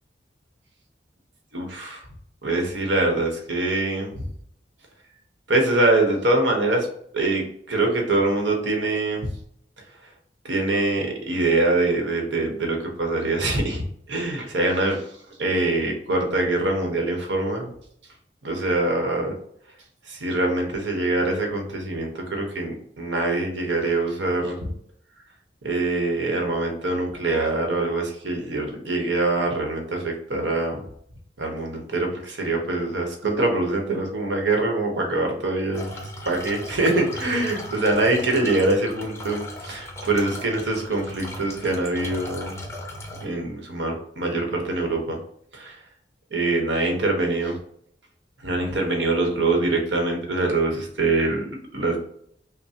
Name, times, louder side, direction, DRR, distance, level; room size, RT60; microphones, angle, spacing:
voice 1, 1.5-2.0 2.4-4.3 5.5-6.9 7.1-9.3 10.4-15.1 15.4-17.7 18.4-19.4 20.1-24.7 25.6-30.8 31.4-42.6 43.2-45.2 45.5-45.8 46.3-47.6 48.4-52.0, right 2 dB, 85° right, 1 dB, 1.0 m, -24 dB
sound 1, 35.7-43.3, left 1 dB, 15° left, 0.7 m, -37 dB
5.5 x 2.1 x 2.8 m, 0.68 s
head